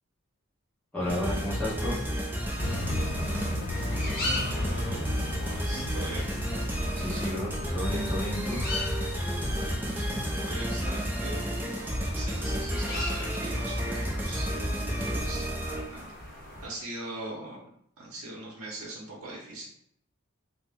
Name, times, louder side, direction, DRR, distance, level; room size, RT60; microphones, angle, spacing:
voice 1, 0.9-2.0 6.9-8.6 12.3-12.5, equal, 5° left, -9 dB, 1.0 m, -32 dB
sound 1, 1.0-16.7, left 1 dB, 45° left, 0.8 m, -41 dB
sound 2, 1.1-16.1, equal, 10° right, 0.3 m, -31 dB
sound 3, 2.6-10.3, left 2 dB, 85° left, 0.4 m, -37 dB
voice 2, 4.3-6.4 10.0-14.6 15.1-16.1 16.6-17.7 18.0-19.7, right 2 dB, 85° right, -3 dB, 0.7 m, -41 dB
2.8 x 2.0 x 3.4 m, 0.70 s
head